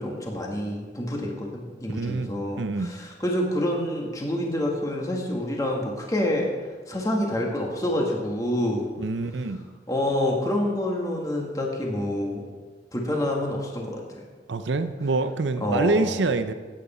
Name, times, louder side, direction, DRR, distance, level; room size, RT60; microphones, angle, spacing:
voice 1, 0.0-6.5 6.9-8.9 9.9-12.4 12.9-14.0 15.6-16.1, left 1 dB, 20° left, -1 dB, 1.8 m, -27 dB
voice 2, 1.9-2.3 2.6-2.9 9.0-9.6 14.5-16.5, right 3 dB, 85° right, 10 dB, 0.6 m, -26 dB
14.5 x 9.5 x 4.3 m, 1.4 s
head